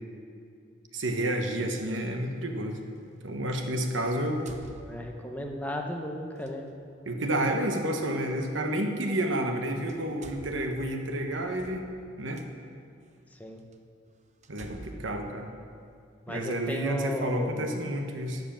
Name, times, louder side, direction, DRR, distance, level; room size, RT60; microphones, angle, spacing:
voice 1, 0.9-2.8 3.2-4.5 7.0-11.9 12.2-12.4 14.5-15.5 16.3-18.4, right 1 dB, 70° right, 4 dB, 1.3 m, -30 dB
sound 1, 1.9-2.0 3.9-5.4 6.4-6.6 8.4-8.5 9.4-9.6 9.9-12.5 13.1-13.2 13.7-13.8 14.4-16.2, right 2 dB, 40° right, 0.8 m, -48 dB
voice 2, 4.6-6.7 7.8-7.9 13.3-13.6 14.9-15.2 16.3-17.7, left 1 dB, 10° left, 1 dB, 1.1 m, -36 dB
12.0 x 8.1 x 7.5 m, 2.3 s
head